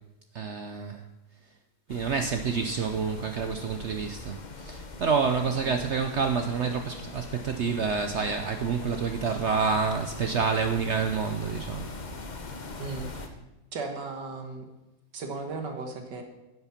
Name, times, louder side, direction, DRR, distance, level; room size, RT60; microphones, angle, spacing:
voice 1, 0.3-1.0 1.9-11.9, right 5 dB, 65° right, 6 dB, 0.7 m, -28 dB
sound 1, 1.9-13.3, left 3 dB, 35° left, 0.7 m, -41 dB
voice 2, 12.8-13.1 13.7-14.7 15.1-16.2, right 3 dB, 85° right, 4 dB, 2.0 m, -36 dB
10.0 x 7.8 x 5.7 m, 1.0 s
omnidirectional pair, 1.8 m